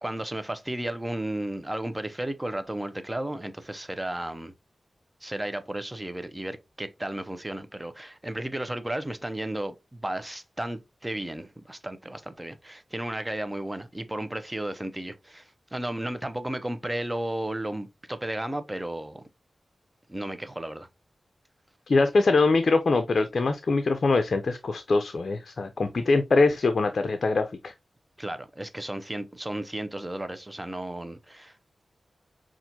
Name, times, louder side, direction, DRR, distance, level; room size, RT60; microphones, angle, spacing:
voice 1, 0.0-4.5 5.2-19.2 20.1-20.9 28.2-31.5, right 1 dB, 20° right, 0.6 m, -34 dB
voice 2, 21.9-27.7, left 3 dB, 65° left, 0.4 m, -23 dB
5.7 x 2.4 x 2.7 m
cardioid pair, 50°, 0 cm